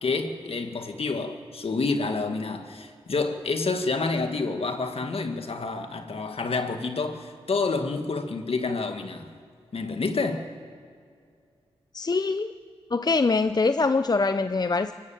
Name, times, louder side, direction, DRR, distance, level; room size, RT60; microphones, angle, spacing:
voice 1, 0.0-9.3 9.7-10.5, left 3 dB, 60° left, 1.9 m, -28 dB
voice 2, 11.9-12.5 12.9-14.9, left 3 dB, 40° left, 0.7 m, -23 dB
24.5 x 12.5 x 8.9 m
cardioid pair, 45°, 11 cm